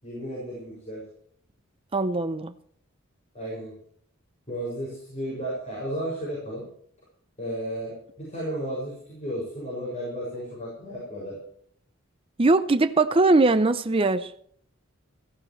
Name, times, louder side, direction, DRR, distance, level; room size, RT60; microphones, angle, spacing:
voice 1, 0.0-1.0 3.3-3.7 4.5-6.7 7.4-7.9 8.2-11.4, equal, 35° left, 6.3 m, -33 dB
voice 2, 1.9-2.5 12.4-14.3, right 3 dB, 25° right, 0.5 m, -21 dB
17.5 x 15.0 x 3.2 m
head